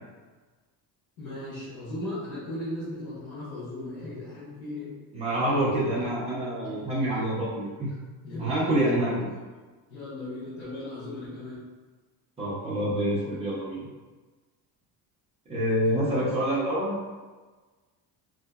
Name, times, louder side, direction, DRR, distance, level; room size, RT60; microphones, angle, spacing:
voice 1, 1.2-4.9 5.4-5.6 5.9-6.1 6.5-6.8 8.2-9.1 9.9-11.6 15.8-16.3, left 1 dB, 90° left, -10 dB, 1.1 m, -37 dB
voice 2, 5.1-7.9 8.4-9.3 12.4-13.8 15.5-17.0, right 1 dB, 15° right, -9 dB, 0.7 m, -27 dB
2.7 x 2.5 x 2.3 m, 1.3 s
cardioid pair, 170°, 42 cm